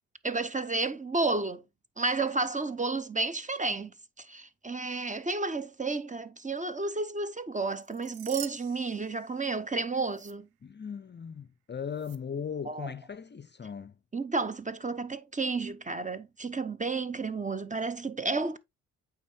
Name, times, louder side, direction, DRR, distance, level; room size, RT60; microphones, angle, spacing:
voice 1, 0.2-1.6 2.0-3.9 4.2-10.5 12.7-12.9 14.1-18.6, right 3 dB, 20° right, 0.8 m, -31 dB
sound 1, 7.7-9.7 10.1-10.3 12.0-12.2, right 13 dB, 80° right, 0.7 m, -45 dB
voice 2, 10.6-14.0, left 7 dB, 30° left, 0.6 m, -38 dB
8.6 x 3.5 x 3.4 m
supercardioid pair, 55°, 38 cm